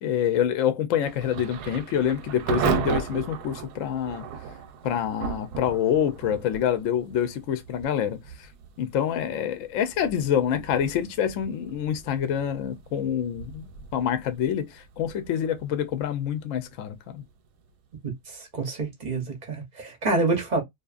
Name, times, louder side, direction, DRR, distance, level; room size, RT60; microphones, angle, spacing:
voice 1, 0.0-4.2 4.8-8.2 8.8-14.7 15.0-17.2, left 9 dB, 65° left, 0.9 m, -26 dB
Thunder / Rain, 1.0-17.7, right 7 dB, 90° right, 1.2 m, -36 dB
voice 2, 18.5-20.6, right 3 dB, 40° right, 0.6 m, -27 dB
2.7 x 2.4 x 2.4 m
omnidirectional pair, 1.6 m